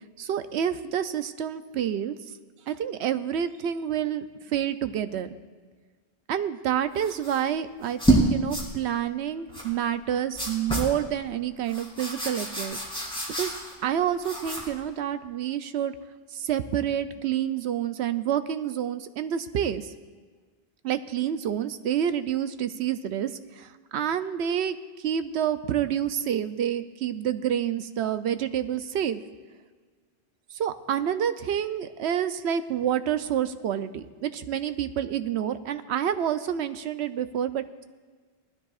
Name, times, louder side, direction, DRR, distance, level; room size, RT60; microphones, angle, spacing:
voice 1, 0.2-2.1 2.7-5.3 6.3-12.8 13.4-13.5 13.8-15.9 16.3-19.9 20.8-29.2 30.5-37.8, right 9 dB, 85° right, 10 dB, 0.9 m, -28 dB
sound 1, 7.0-7.4 7.8-8.2 8.5-8.7 9.5-9.7 10.3-10.9 11.7-13.8 14.2-14.8, right 2 dB, 5° left, 3.3 m, -27 dB
19.5 x 13.0 x 2.4 m, 1.4 s
omnidirectional pair, 1.1 m